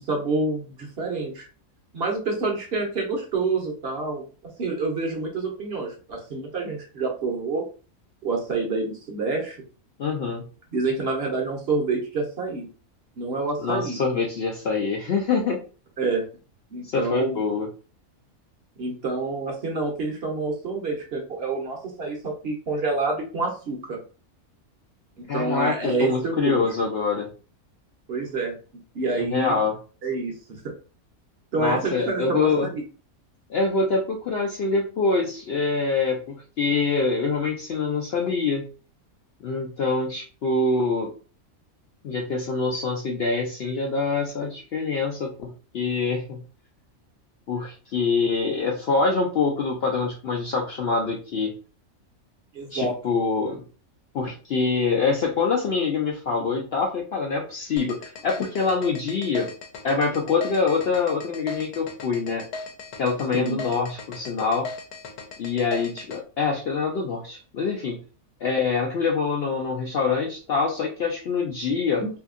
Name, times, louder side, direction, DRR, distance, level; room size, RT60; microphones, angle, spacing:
voice 1, 0.0-1.5 1.9-4.2 4.6-7.6 8.2-9.6 10.7-12.7 13.2-14.0 16.0-16.2 16.7-17.4 18.8-24.0 25.2-26.7 28.1-28.5 28.9-29.6 30.0-30.3 30.6-30.7 31.5-32.8 52.5-52.9 63.3-63.6 72.0-72.1, right 3 dB, 55° right, 0 dB, 0.8 m, -27 dB
voice 2, 10.0-10.4 13.6-15.6 16.8-17.7 25.3-27.3 29.3-29.8 31.6-32.7 33.5-38.7 39.4-41.1 42.0-46.4 47.5-51.6 52.7-53.6 54.1-59.5 59.8-62.4 63.0-64.7 65.4-68.0 68.4-72.0, left 4 dB, 70° left, 0 dB, 0.6 m, -25 dB
sound 1, 57.8-66.2, left 4 dB, 90° left, 1.1 m, -37 dB
2.8 x 2.6 x 2.4 m, 0.37 s
omnidirectional pair, 1.5 m